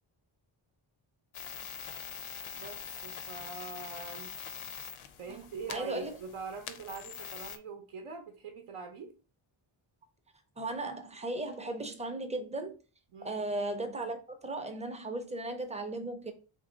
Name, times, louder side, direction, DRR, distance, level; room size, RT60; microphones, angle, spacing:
sound 1, 1.3-7.6, left 6 dB, 75° left, 0.6 m, -44 dB
voice 1, 2.5-4.3 5.2-9.1 13.1-13.4, right 5 dB, 80° right, 4 dB, 0.7 m, -43 dB
voice 2, 5.7-6.2 10.6-12.7 13.2-16.3, right 2 dB, 15° right, 6 dB, 0.5 m, -36 dB
3.1 x 2.6 x 3.8 m, 0.35 s
wide cardioid pair, 135°, 50 cm